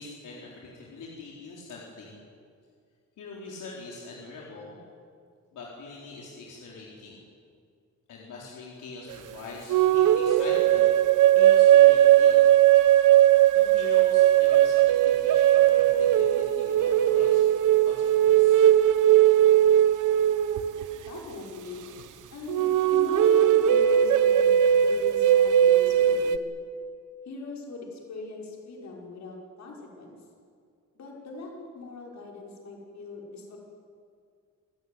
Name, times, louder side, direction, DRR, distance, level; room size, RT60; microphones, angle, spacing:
voice 1, 0.0-2.1 3.2-4.8 5.5-7.2 8.1-12.4 13.5-17.4 17.8-18.7, left 3 dB, 80° left, -3 dB, 4.2 m, -43 dB
sound 1, 9.7-21.1 22.5-26.4, right 11 dB, 75° right, 1.2 m, -19 dB
voice 2, 20.6-21.8 22.3-26.4 27.3-30.2 30.9-33.6, left 3 dB, 60° left, -1 dB, 5.9 m, -40 dB
27.0 x 16.0 x 9.6 m, 2.2 s
wide cardioid pair, 170°, 31 cm